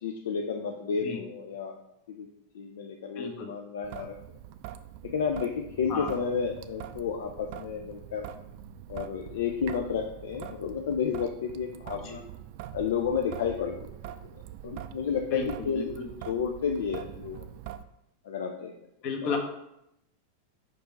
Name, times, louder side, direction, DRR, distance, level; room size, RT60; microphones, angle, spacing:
voice 1, 0.0-1.8 2.1-2.3 2.5-4.1 5.0-8.3 8.9-12.2 12.7-13.8 14.6-17.5 18.2-18.7, left 6 dB, 60° left, 3 dB, 0.6 m, -31 dB
voice 2, 3.1-3.5 5.9-6.1 12.0-12.2 15.3-16.1 19.0-19.4, left 5 dB, 40° left, 3 dB, 1.2 m, -33 dB
Traffic noise roadway noise / Drip / Trickle dribble, 3.8-17.8, right 12 dB, 45° right, 0.4 m, -44 dB
5.4 x 5.1 x 4.5 m, 0.82 s
figure-of-eight pair, 90°, 0 cm